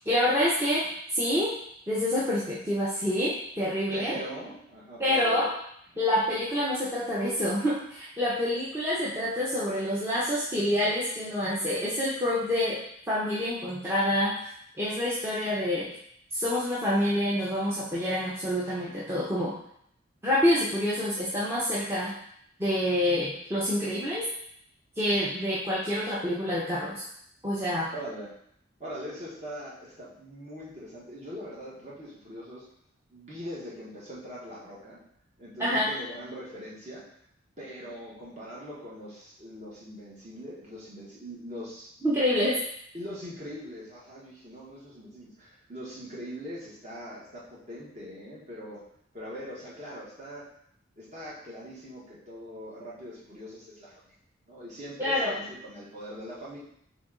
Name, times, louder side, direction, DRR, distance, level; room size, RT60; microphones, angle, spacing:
voice 1, 0.1-0.8 1.1-1.5 1.9-4.2 5.0-5.5 6.0-12.8 13.1-14.3 14.8-15.9 16.3-19.5 20.2-22.1 22.6-24.2 25.0-27.0 27.4-27.9 35.6-35.9 42.0-42.6 55.0-55.4, left 1 dB, 10° right, -9 dB, 0.7 m, -27 dB
voice 2, 3.9-5.5 5.9-6.2 27.9-28.3 28.8-32.6 33.1-35.0 35.4-37.0 37.6-41.9 42.9-48.8 49.1-50.5 51.0-54.1 54.5-56.6, equal, 35° right, -6 dB, 1.3 m, -42 dB
4.1 x 3.1 x 3.7 m, 0.69 s
head